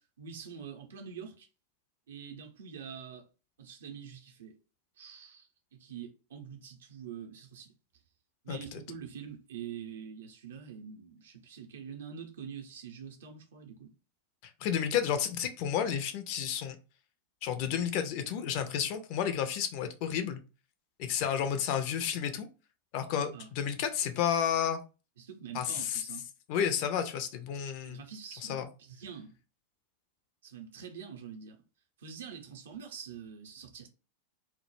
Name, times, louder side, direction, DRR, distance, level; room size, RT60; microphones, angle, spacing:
voice 1, 0.0-1.5 2.1-3.3 3.6-4.6 5.0-7.7 8.4-13.9 23.1-23.5 25.2-26.3 27.8-29.4 30.4-31.6 32.0-33.9, right 7 dB, 60° right, 0.5 m, -45 dB
voice 2, 8.5-8.8 14.4-16.8 17.4-20.4 21.0-22.5 22.9-24.8 25.5-26.0 26.5-28.0 28.5-28.7, left 8 dB, 45° left, 0.4 m, -31 dB
2.1 x 2.0 x 3.0 m
figure-of-eight pair, 90°, 0 cm